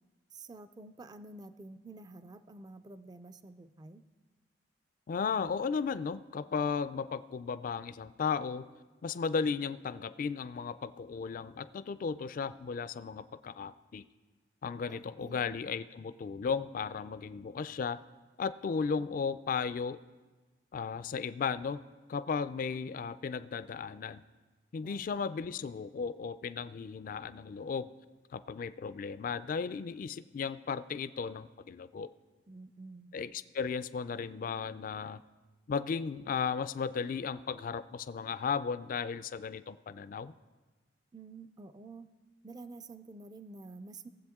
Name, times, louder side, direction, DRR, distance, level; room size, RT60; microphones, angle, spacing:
voice 1, 0.3-4.0 14.9-15.6 24.8-25.1 32.5-33.1 41.1-42.1 42.4-44.1, right 3 dB, 25° right, 11 dB, 0.4 m, -49 dB
voice 2, 5.1-8.7 9.0-14.1 14.6-18.0 18.4-20.0 20.7-21.8 22.1-24.2 24.7-27.9 28.3-32.1 33.1-35.2 35.7-40.3, left 5 dB, 50° left, 15 dB, 0.3 m, -35 dB
18.5 x 7.6 x 3.6 m, 1.3 s
head